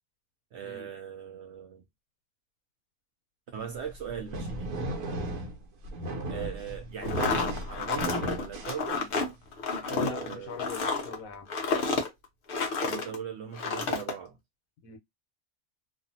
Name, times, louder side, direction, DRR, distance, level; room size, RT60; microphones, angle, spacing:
voice 1, 0.5-1.8 3.5-4.8 6.3-9.1 9.8-10.7 12.8-14.4, right 8 dB, 65° right, 0.7 m, -39 dB
sound 1, 3.7-9.4, right 1 dB, 85° right, 1.3 m, -36 dB
sound 2, 7.0-13.2 13.5-14.1, left 4 dB, 55° left, 0.6 m, -30 dB
voice 2, 9.9-11.5 14.8-15.0, left 6 dB, 75° left, 1.1 m, -41 dB
2.6 x 2.4 x 2.6 m
omnidirectional pair, 1.5 m